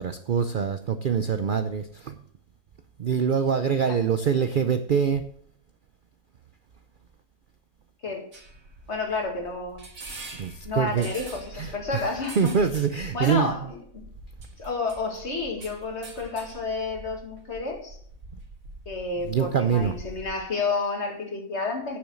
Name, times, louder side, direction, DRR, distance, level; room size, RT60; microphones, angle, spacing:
voice 1, 0.0-2.2 3.0-5.2 10.3-11.1 11.5-11.7 12.4-13.5 19.3-19.9, right 7 dB, 80° right, 9 dB, 0.4 m, -24 dB
sound 1, 8.3-20.4, right 2 dB, 60° right, 2.5 m, -44 dB
voice 2, 8.9-9.8 10.6-12.5 13.1-13.8 14.6-18.0 18.9-22.0, left 3 dB, 45° left, 2 dB, 2.2 m, -30 dB
9.4 x 7.0 x 6.2 m, 0.64 s
omnidirectional pair, 1.6 m